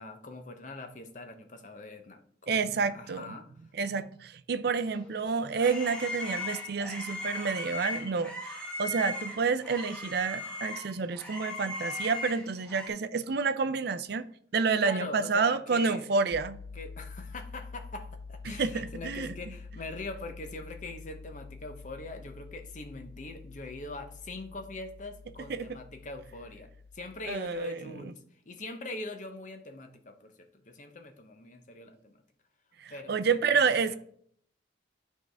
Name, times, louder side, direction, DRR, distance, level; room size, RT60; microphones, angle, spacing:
voice 1, 0.0-3.5 14.8-16.1 16.7-28.2 28.5-32.2 32.9-34.0, left 2 dB, 40° left, 0.8 m, -42 dB
voice 2, 2.5-3.3 3.7-8.5 8.8-14.3 14.5-16.6 18.5-19.3 25.5-25.8 27.3-28.1 32.8-34.0, right 5 dB, 55° right, 0.4 m, -29 dB
sound 1, 5.0-12.9, left 2 dB, 5° left, 1.2 m, -38 dB
sound 2, 16.3-27.4, left 4 dB, 70° left, 0.8 m, -47 dB
11.0 x 4.6 x 3.4 m
head